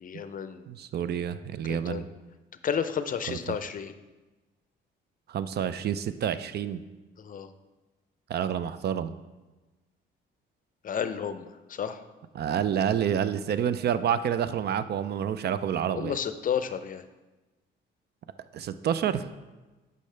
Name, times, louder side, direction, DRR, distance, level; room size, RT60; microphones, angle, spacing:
voice 1, 0.0-0.6 1.7-2.0 2.6-3.9 7.2-7.5 10.8-12.0 15.9-17.0, left 7 dB, 45° left, 11 dB, 0.5 m, -32 dB
voice 2, 0.7-2.1 3.3-3.4 5.3-6.8 8.3-9.1 12.3-16.2 18.5-19.3, right 9 dB, 55° right, 13 dB, 0.4 m, -28 dB
10.0 x 5.4 x 3.3 m, 1.2 s
cardioid pair, 90°, 20 cm